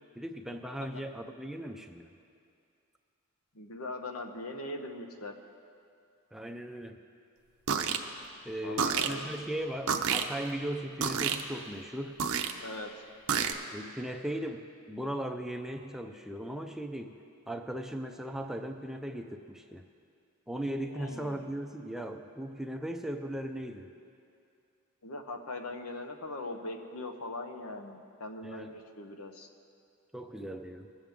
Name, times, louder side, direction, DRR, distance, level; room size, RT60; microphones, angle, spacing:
voice 1, 0.2-2.1 6.3-7.0 8.4-12.2 13.7-17.2 17.5-19.8 20.5-23.9 28.4-28.7 30.1-30.9, right 1 dB, ahead, 4 dB, 0.4 m, -38 dB
voice 2, 3.5-5.3 8.6-9.3 12.6-12.9 20.9-21.5 25.0-29.5, left 2 dB, 80° left, 5 dB, 0.9 m, -40 dB
sound 1, 7.7-8.0 8.8-9.1 9.9-10.2 11.0-11.4 12.2-12.5 13.3-13.5, right 7 dB, 70° right, 0.7 m, -28 dB
20.5 x 7.4 x 3.6 m, 2.5 s
head